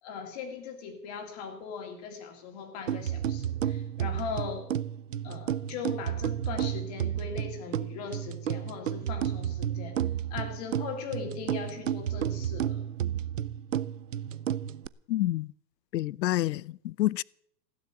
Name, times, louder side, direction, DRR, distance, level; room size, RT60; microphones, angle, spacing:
voice 1, 0.0-4.7 5.2-10.0 10.3-12.8, left 6 dB, 25° left, 2.1 m, -39 dB
sound 1, 2.9-14.9, right 10 dB, 55° right, 0.5 m, -32 dB
voice 2, 15.1-15.5 15.9-17.2, left 15 dB, 80° left, 0.5 m, -28 dB
15.5 x 9.9 x 7.7 m
hypercardioid pair, 180°, 50 cm